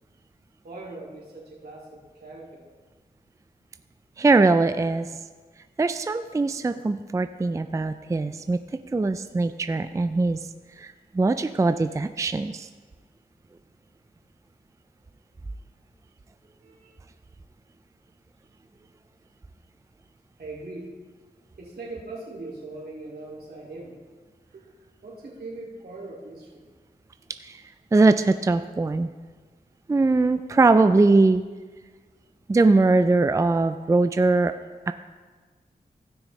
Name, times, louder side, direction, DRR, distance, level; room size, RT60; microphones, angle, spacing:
voice 1, 0.6-2.6 16.6-16.9 20.4-20.9 21.6-23.9 24.5-24.7 25.0-26.6, right 2 dB, 80° right, -5 dB, 2.6 m, -40 dB
voice 2, 4.2-5.1 5.8-8.6 8.9-10.4 10.8-12.7 27.4-27.6 27.9-29.1 29.9-31.4 32.5-34.5 34.9-35.0, right 3 dB, 20° right, 10 dB, 0.4 m, -21 dB
15.5 x 6.2 x 3.2 m, 1.4 s
cardioid pair, 55°, 16 cm